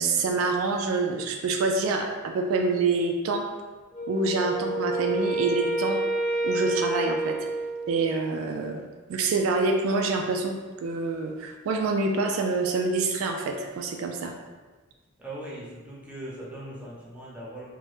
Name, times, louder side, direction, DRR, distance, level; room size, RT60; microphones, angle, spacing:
voice 1, 0.0-3.5 4.1-6.0 6.4-7.4 7.9-8.8 9.1-14.3, right 3 dB, 75° right, 3 dB, 0.3 m, -26 dB
Wind instrument woodwind instrument, 3.9-8.3, right 1 dB, 35° left, 0.6 m, -29 dB
voice 2, 15.2-17.6, right 1 dB, 5° right, -7 dB, 0.7 m, -39 dB
2.9 x 2.1 x 3.1 m, 1.3 s
head